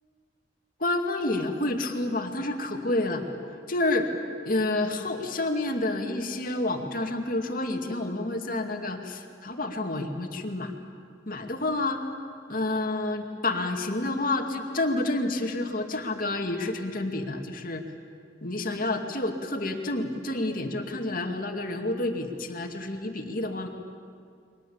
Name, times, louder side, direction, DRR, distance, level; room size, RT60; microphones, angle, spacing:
voice 1, 0.8-3.2 3.7-4.1 4.4-10.7 11.3-12.0 12.5-17.8 18.4-23.7, left 2 dB, 55° left, 4 dB, 2.3 m, -29 dB
29.0 x 24.0 x 7.2 m, 2.3 s
head